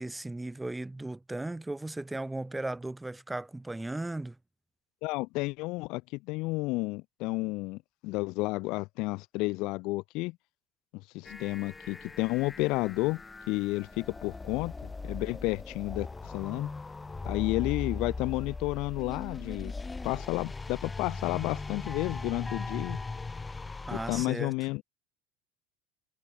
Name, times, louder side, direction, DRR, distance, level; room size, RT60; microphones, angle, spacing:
voice 1, 0.0-4.4 23.9-24.6, right 2 dB, 10° right, 1.5 m, -36 dB
voice 2, 5.0-10.4 11.1-13.2 13.5-16.7 17.3-19.7 20.0-23.0 23.9-24.8, left 23 dB, 65° left, 0.3 m, -31 dB
sound 1, 11.2-24.2, left 3 dB, 15° left, 2.0 m, -39 dB
supercardioid pair, 105°, 0 cm